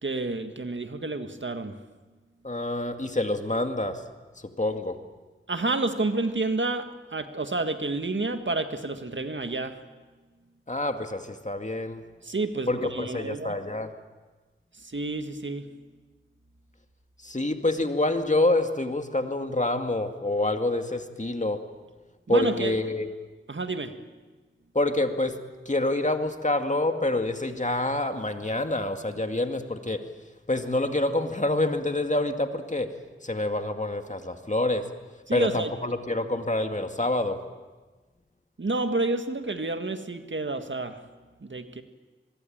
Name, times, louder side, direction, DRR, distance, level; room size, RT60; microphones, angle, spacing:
voice 1, 0.0-1.7 5.5-9.8 12.2-13.6 14.8-15.6 22.3-22.7 23.5-23.9 35.3-35.7 38.6-41.0 41.4-41.8, right 2 dB, 60° right, 7 dB, 1.8 m, -29 dB
voice 2, 2.4-4.0 4.6-5.0 10.7-12.0 12.7-13.9 17.2-21.6 22.3-23.1 24.7-25.4 25.7-30.0 30.5-32.9 33.2-34.9 35.3-37.4, left 2 dB, 35° left, 6 dB, 2.2 m, -27 dB
24.5 x 22.0 x 8.8 m, 1.3 s
wide cardioid pair, 50°, 21 cm